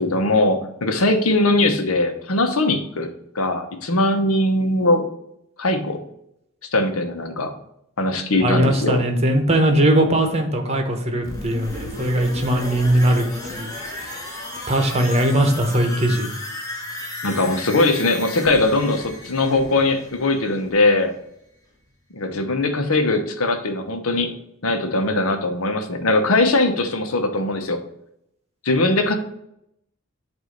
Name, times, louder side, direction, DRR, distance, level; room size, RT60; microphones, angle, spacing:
voice 1, 0.0-3.1 3.3-5.0 5.6-6.0 6.7-7.5 8.0-9.0 17.2-21.1 22.1-24.3 24.6-27.8 28.6-29.1, left 2 dB, 80° left, 6 dB, 0.9 m, -20 dB
voice 2, 8.4-14.2 14.7-16.3, right 1 dB, 30° right, 4 dB, 1.0 m, -20 dB
sound 1, 11.2-21.0 21.3-21.4, left 1 dB, 15° left, 1.4 m, -34 dB
8.0 x 2.7 x 5.2 m, 0.77 s
head